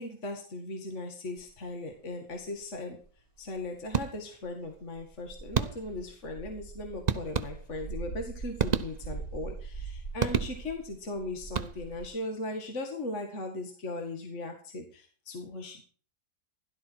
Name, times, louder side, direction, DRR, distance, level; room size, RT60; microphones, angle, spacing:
voice 1, 0.0-3.0 3.4-15.8, left 2 dB, 45° left, 4 dB, 2.4 m, -38 dB
sound 1, 1.4-1.5 2.3-2.4 3.0-3.1 3.4-3.8 4.4-12.1, right 4 dB, 15° left, 5.0 m, -42 dB
sound 2, 3.9-4.5 5.5-6.1 7.1-7.9 8.6-9.4 10.2-10.9 11.4-12.1, right 5 dB, 35° right, 0.7 m, -31 dB
16.5 x 12.5 x 4.7 m, 0.41 s
omnidirectional pair, 1.8 m